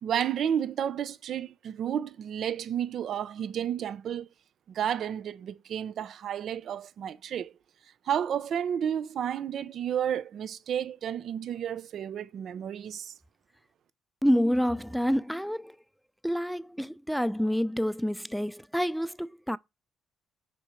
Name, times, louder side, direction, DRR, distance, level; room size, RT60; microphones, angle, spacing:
voice 1, 0.0-4.3 4.7-7.5 8.1-13.1, right 9 dB, 65° right, 0.6 m, -31 dB
voice 2, 14.2-15.8 16.2-19.6, equal, ahead, 0.4 m, -28 dB
6.1 x 4.5 x 6.1 m
cardioid pair, 90°, 0 cm